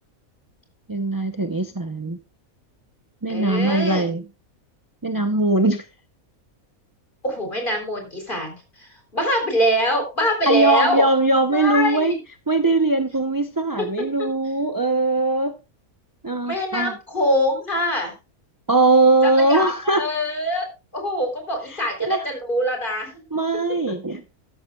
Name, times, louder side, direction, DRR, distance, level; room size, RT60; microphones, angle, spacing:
voice 1, 0.9-2.2 3.2-4.2 5.0-5.8 10.5-12.1 12.5-15.6 16.2-16.9 18.7-20.0 21.7-22.3 23.3-24.3, right 2 dB, 20° right, 8 dB, 0.6 m, -20 dB
voice 2, 3.3-4.1 7.2-11.1 11.5-12.2 13.8-13.9 16.5-18.1 19.2-20.6 20.9-23.2, equal, 35° left, 4 dB, 4.1 m, -24 dB
14.0 x 12.5 x 2.4 m, 0.28 s
omnidirectional pair, 1.5 m